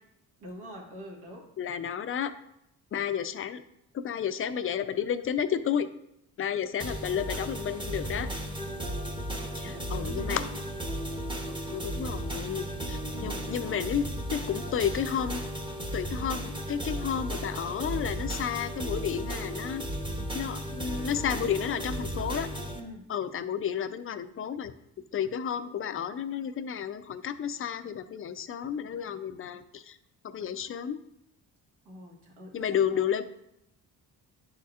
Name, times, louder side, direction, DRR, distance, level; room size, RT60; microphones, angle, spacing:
voice 1, 0.4-1.5 9.3-10.5 13.1-13.5 22.7-23.0 31.8-33.0, equal, 80° right, 0 dB, 1.6 m, -45 dB
voice 2, 1.6-2.3 2.9-3.6 3.9-5.9 6.4-8.3 9.5-10.4 11.5-15.4 15.9-19.9 20.3-22.5 23.1-24.7 25.1-30.0 30.3-31.0 32.5-33.2, left 8 dB, 35° left, 11 dB, 0.4 m, -31 dB
sound 1, 6.8-22.8, right 1 dB, 10° right, 0.8 m, -35 dB
10.0 x 4.2 x 2.4 m, 0.80 s
cardioid pair, 110°, 39 cm